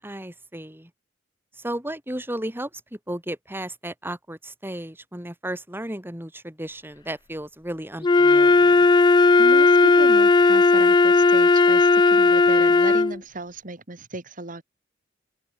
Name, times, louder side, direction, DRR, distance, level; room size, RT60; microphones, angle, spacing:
voice 1, 0.0-0.9 1.6-8.9, right 1 dB, 10° right, 7.5 m, -34 dB
Wind instrument woodwind instrument, 8.0-13.2, left 3 dB, 25° left, 0.4 m, -16 dB
voice 2, 9.4-14.6, right 2 dB, 45° right, 2.7 m, -35 dB
open air
head